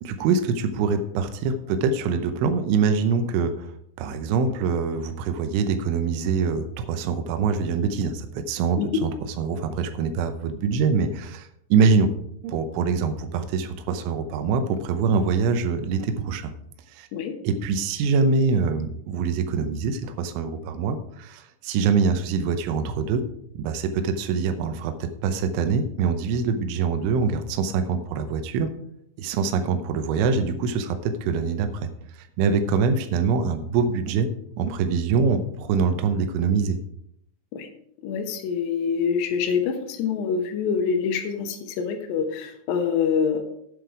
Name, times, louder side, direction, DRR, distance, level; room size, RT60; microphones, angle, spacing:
voice 1, 0.0-3.7 4.0-9.1 9.4-12.1 12.4-16.5 16.9-17.1 17.4-23.2 23.5-28.7 29.2-31.9 32.1-34.3 34.6-36.8, right 5 dB, 85° right, 7 dB, 3.2 m, -24 dB
voice 2, 38.0-43.4, left 6 dB, 70° left, 6 dB, 2.9 m, -25 dB
8.6 x 7.7 x 4.8 m, 0.73 s
omnidirectional pair, 5.4 m